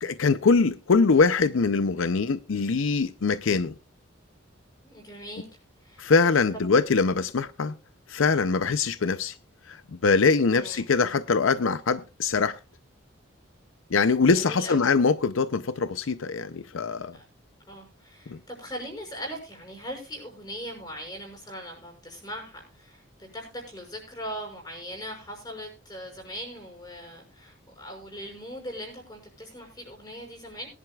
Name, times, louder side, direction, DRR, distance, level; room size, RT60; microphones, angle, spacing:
voice 1, 0.0-3.7 6.0-7.7 8.1-9.4 9.7-12.6 13.9-17.2 18.3-18.4, left 4 dB, 85° left, 0.6 m, -23 dB
voice 2, 4.8-5.5 5.8-6.1 6.5-6.6 10.5-10.8 14.3-14.9 17.1-17.2 17.7-30.7, equal, 20° left, 5.9 m, -40 dB
21.0 x 11.0 x 2.4 m
head